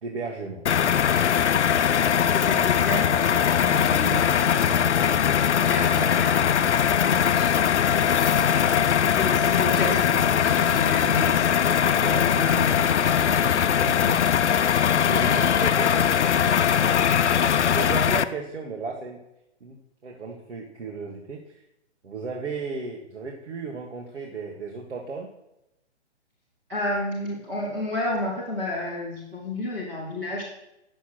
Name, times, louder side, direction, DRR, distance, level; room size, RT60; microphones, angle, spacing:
voice 1, 0.0-0.6 7.0-7.3 8.4-8.6 12.0-12.3 13.8-14.0 14.9-16.1 17.4-19.2 19.6-19.8 20.0-21.6 22.0-25.3, right 4 dB, 70° right, 0 dB, 1.8 m, -35 dB
sound 1, 0.7-18.2, left 8 dB, 70° left, 0.7 m, -21 dB
voice 2, 1.9-6.4 7.3-7.6 9.1-11.7 12.1-13.8 14.0-14.2 26.7-30.4, left 2 dB, 5° right, -7 dB, 0.8 m, -32 dB
9.3 x 7.2 x 6.4 m, 0.88 s
hypercardioid pair, 180°, 36 cm